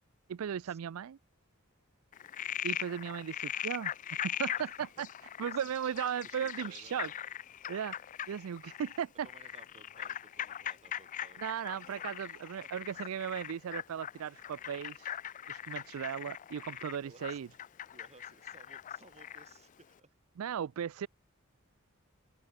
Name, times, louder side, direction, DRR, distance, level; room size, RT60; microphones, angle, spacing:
voice 1, 0.3-1.2 2.6-3.9 4.2-5.1 5.4-7.1 7.7-7.9 8.3-9.3 11.4-15.2 15.5-17.5 20.4-21.1, right 8 dB, 75° right, 0.4 m, -37 dB
Frog, 2.1-19.6, left 10 dB, 35° left, 0.3 m, -41 dB
voice 2, 6.2-7.1 9.2-11.4 11.9-12.4 12.6-13.0 16.2-16.3 17.0-17.5 17.9-20.1, right 3 dB, 30° right, 5.3 m, -59 dB
open air
head